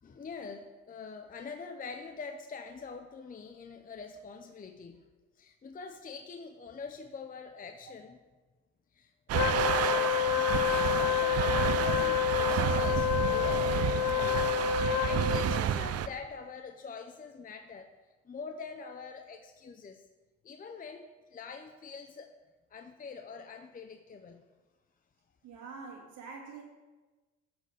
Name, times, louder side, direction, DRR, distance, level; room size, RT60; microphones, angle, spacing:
voice 1, 0.0-5.0 5.4-8.2 8.9-9.1 9.5-17.9 18.2-20.0 20.4-22.3 22.7-24.4, left 5 dB, 30° left, 6 dB, 0.6 m, -44 dB
Wind instrument woodwind instrument, 9.3-15.6, left 12 dB, 90° left, 0.6 m, -29 dB
sound 1, 9.3-16.1, right 10 dB, 55° right, 0.5 m, -30 dB
voice 2, 25.4-26.6, right 4 dB, 90° right, -1 dB, 2.2 m, -45 dB
10.0 x 4.3 x 6.3 m, 1.2 s
cardioid pair, 90°, 30 cm